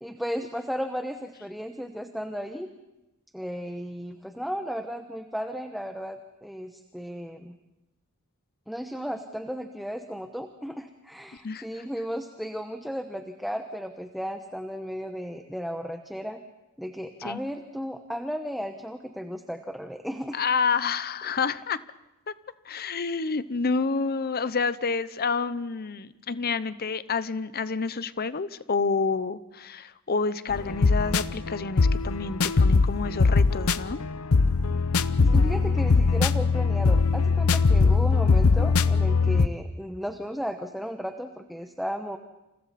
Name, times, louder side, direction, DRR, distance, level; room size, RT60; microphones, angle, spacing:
voice 1, 0.0-2.7 3.3-7.5 8.7-16.4 16.8-20.4 35.2-42.2, equal, ahead, 5 dB, 1.0 m, -34 dB
voice 2, 20.3-21.8 22.7-34.0, left 4 dB, 45° left, 15 dB, 0.8 m, -28 dB
sound 1, 30.5-39.5, left 4 dB, 75° left, 0.7 m, -21 dB
29.5 x 28.5 x 4.2 m, 0.97 s
head